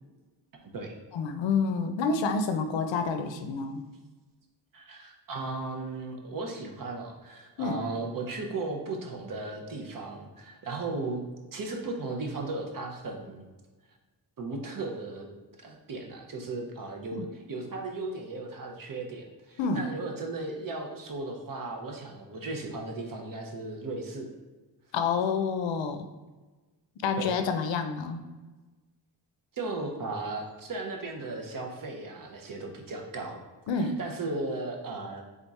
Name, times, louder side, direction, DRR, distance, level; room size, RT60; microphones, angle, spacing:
voice 1, 1.1-3.8 7.6-7.8 17.1-17.3 19.6-19.9 24.9-26.0 27.0-28.2 33.7-34.0, left 5 dB, 85° left, 8 dB, 0.6 m, -28 dB
voice 2, 4.7-11.2 11.5-13.5 14.4-15.3 15.6-24.3 27.2-27.4 29.5-33.4 33.8-35.2, right 3 dB, 50° right, 2 dB, 0.7 m, -36 dB
3.6 x 3.5 x 4.1 m, 1.2 s
wide cardioid pair, 180°, 43 cm